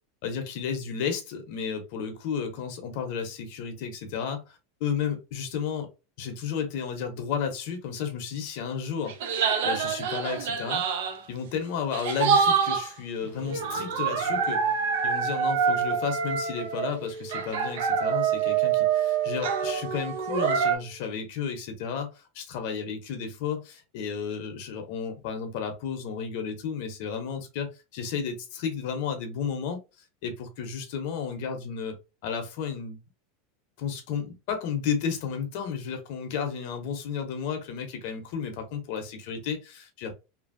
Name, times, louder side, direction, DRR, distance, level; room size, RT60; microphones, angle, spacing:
voice 1, 0.2-5.9 6.2-10.8 11.3-14.6 15.0-29.8 30.2-33.0 33.8-40.1, left 7 dB, 55° left, 0.8 m, -33 dB
sound 1, 9.1-11.2 11.9-12.9 13.4-17.0 17.3-20.8, right 7 dB, 70° right, 0.5 m, -26 dB
sound 2, 13.2-21.1, right 2 dB, 25° right, 1.5 m, -43 dB
2.8 x 2.6 x 2.5 m
supercardioid pair, 160°, 0 cm